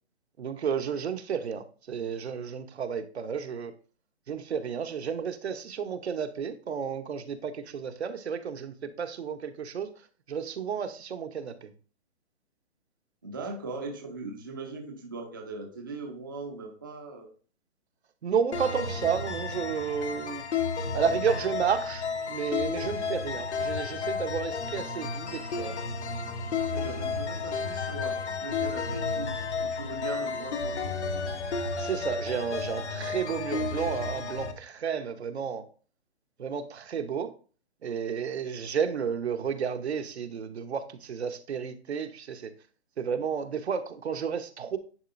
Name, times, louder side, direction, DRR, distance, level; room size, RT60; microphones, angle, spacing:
voice 1, 0.4-3.7 4.3-9.9 10.3-11.7 18.2-20.4 20.9-25.9 31.8-35.6 36.4-37.3 37.8-42.5 43.0-44.8, right 7 dB, 65° right, 8 dB, 0.9 m, -32 dB
voice 2, 13.2-17.3 26.7-29.3 29.6-30.9, right 3 dB, 20° right, 1 dB, 0.5 m, -39 dB
sound 1, 18.5-34.5, left 4 dB, 75° left, 1.1 m, -32 dB
10.0 x 4.1 x 2.5 m, 0.39 s
hypercardioid pair, 170°, 34 cm